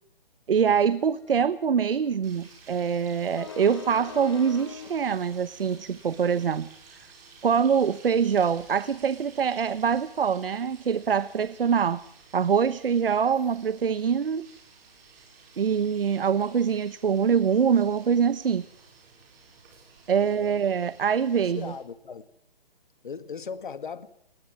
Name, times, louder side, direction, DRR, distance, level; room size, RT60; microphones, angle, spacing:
voice 1, 0.5-6.7 7.4-12.0 12.3-14.4 15.6-18.6 20.1-21.7, right 7 dB, 70° right, 1.1 m, -24 dB
sound 1, 0.9-7.1, left 7 dB, 25° left, 0.9 m, -45 dB
sound 2, 2.2-21.8, right 4 dB, 20° right, 5.8 m, -53 dB
voice 2, 20.1-20.7 21.5-22.3 23.0-24.1, left 6 dB, 55° left, 1.9 m, -38 dB
21.0 x 20.0 x 9.6 m
hypercardioid pair, 180°, 29 cm